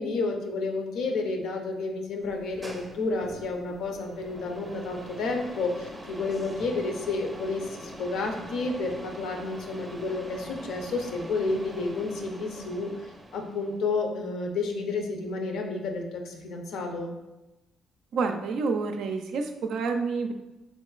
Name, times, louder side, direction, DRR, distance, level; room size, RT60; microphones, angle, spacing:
voice 1, 0.0-17.1, left 3 dB, 80° left, 2 dB, 0.5 m, -31 dB
sound 1, 2.2-13.8, right 1 dB, 15° right, 0.6 m, -43 dB
voice 2, 18.1-20.3, right 4 dB, 75° right, 5 dB, 0.3 m, -28 dB
3.6 x 2.9 x 2.3 m, 1.0 s
cardioid pair, 90°, 0 cm